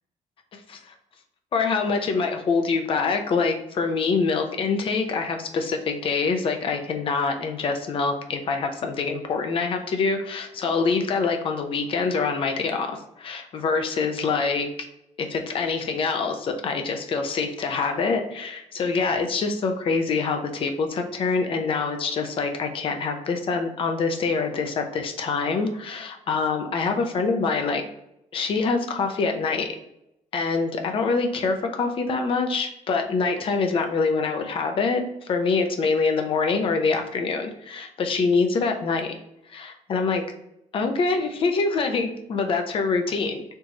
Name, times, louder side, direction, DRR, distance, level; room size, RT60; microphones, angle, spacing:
voice 1, 0.5-0.9 1.5-14.7 15.2-27.9 28.3-29.7 30.3-39.1 39.5-40.2 40.7-43.4, left 4 dB, 45° left, 5 dB, 0.7 m, -25 dB
4.5 x 3.1 x 3.9 m, 0.83 s
cardioid pair, 170°, 13 cm